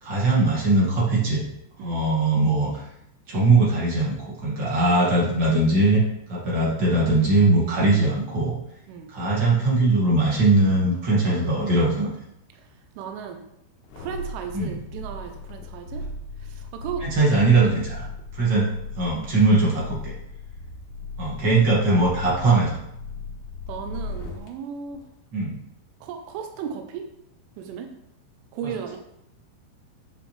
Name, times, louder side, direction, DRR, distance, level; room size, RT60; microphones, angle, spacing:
voice 1, 0.0-1.4 1.8-2.8 3.3-6.0 6.3-8.5 9.1-12.1 14.5-14.7 17.0-18.0 18.3-20.1 21.2-22.8 25.3-25.5 28.6-28.7, right 2 dB, 40° right, -5 dB, 1.7 m, -20 dB
voice 2, 13.0-13.4 14.0-16.0 16.6-17.1 23.7-25.0 26.0-27.0 27.6-27.9 28.5-29.0, right 7 dB, 90° right, 5 dB, 3.4 m, -35 dB
sound 1, 13.8-24.5 24.9-25.0, left 2 dB, 80° left, 3.8 m, -37 dB
10.5 x 7.0 x 3.4 m, 0.80 s
omnidirectional pair, 5.5 m